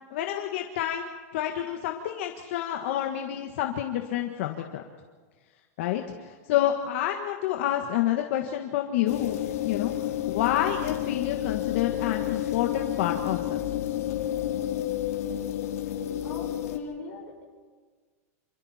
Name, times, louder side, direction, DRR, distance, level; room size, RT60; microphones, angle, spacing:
voice 1, 0.1-4.8 5.8-9.4 9.6-9.9 10.3-13.6, left 12 dB, 50° left, 3 dB, 1.7 m, -28 dB
sound 1, 9.1-16.8, left 12 dB, 70° left, 2.6 m, -30 dB
voice 2, 16.2-17.4, left 4 dB, 15° left, -3 dB, 6.3 m, -40 dB
28.5 x 27.5 x 4.4 m, 1.5 s
supercardioid pair, 175°, 8 cm